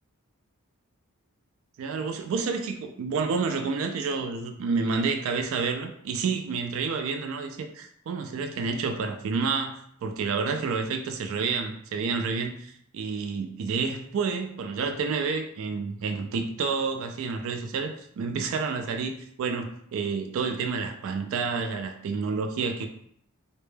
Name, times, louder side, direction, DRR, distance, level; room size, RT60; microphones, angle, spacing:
voice 1, 1.8-22.9, right 4 dB, 65° right, 6 dB, 0.3 m, -29 dB
2.1 x 2.0 x 3.1 m, 0.66 s
head